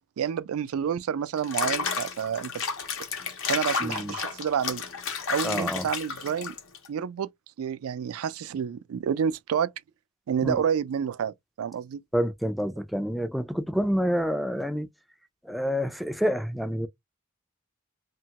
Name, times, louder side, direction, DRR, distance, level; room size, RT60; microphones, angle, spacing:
voice 1, 0.2-2.5 3.5-4.8 5.3-6.5 6.9-7.3 7.6-9.7 10.3-12.0, right 7 dB, 85° right, 0.3 m, -29 dB
Water / Bathtub (filling or washing), 1.4-6.9, left 6 dB, 70° left, 0.8 m, -32 dB
voice 2, 3.8-4.1 5.4-5.9 10.4-10.6 12.1-14.9 15.4-16.9, equal, ahead, 0.3 m, -28 dB
2.8 x 2.3 x 2.8 m
head